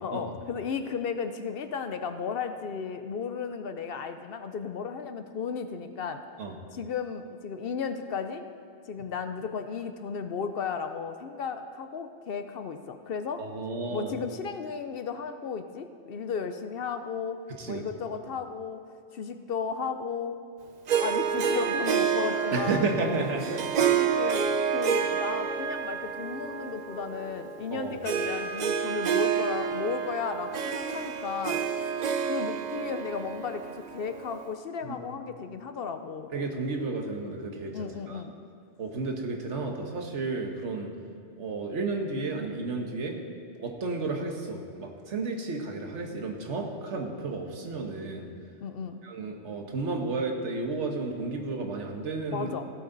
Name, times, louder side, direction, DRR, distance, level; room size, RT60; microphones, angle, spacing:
voice 1, 0.0-6.2 6.7-8.4 8.9-13.4 13.9-17.4 17.7-18.8 19.1-20.4 21.0-22.9 23.9-24.4 24.7-31.6 32.3-36.3 37.7-38.3 48.6-49.0 52.3-52.6, left 6 dB, 60° left, 8 dB, 0.8 m, -34 dB
voice 2, 13.4-14.1 17.6-17.8 22.5-23.9 27.7-28.0 34.8-35.0 36.3-38.2 38.8-40.9 41.4-43.1 43.6-48.3 49.0-52.5, right 3 dB, 85° right, 2 dB, 1.5 m, -32 dB
Harp, 20.9-34.5, right 7 dB, 50° right, 0.5 m, -29 dB
16.0 x 8.3 x 3.9 m, 2.4 s
omnidirectional pair, 1.2 m